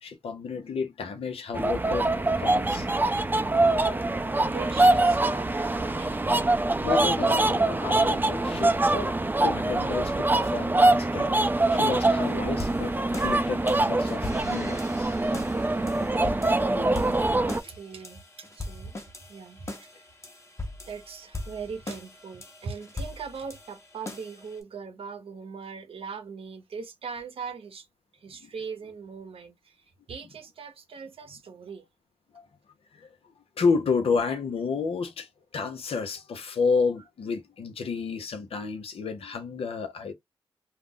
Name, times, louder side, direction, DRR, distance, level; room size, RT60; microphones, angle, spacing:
voice 1, 0.0-2.1 2.4-2.9 3.6-3.7 6.8-9.1 9.4-15.2 16.7-16.9 17.2-17.3 28.4-28.5 32.3-32.5 32.9-33.1 33.6-40.1, left 5 dB, 75° left, 0.6 m, -31 dB
sound 1, 1.5-17.6, right 2 dB, 20° right, 0.5 m, -24 dB
voice 2, 4.4-6.2 16.4-16.5 17.4-19.0 19.3-20.2 20.9-27.9 28.1-31.9, right 5 dB, 70° right, 0.7 m, -40 dB
sound 2, 12.2-24.6, left 2 dB, 30° left, 0.9 m, -40 dB
2.3 x 2.0 x 3.6 m
supercardioid pair, 45°, 10 cm